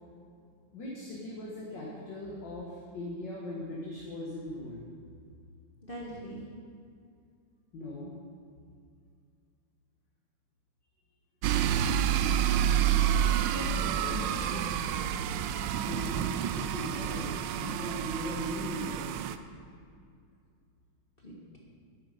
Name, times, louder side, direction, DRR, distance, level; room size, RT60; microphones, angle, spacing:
voice 1, 0.7-4.8 7.7-8.2 15.8-19.1, left 1 dB, 65° left, -5 dB, 2.4 m, -39 dB
voice 2, 5.8-6.5 13.2-15.0 21.2-21.6, right 1 dB, 30° left, -3 dB, 1.7 m, -41 dB
sound 1, 11.4-19.4, right 9 dB, 75° right, 1.2 m, -29 dB
12.5 x 10.0 x 5.3 m, 2.3 s
omnidirectional pair, 2.1 m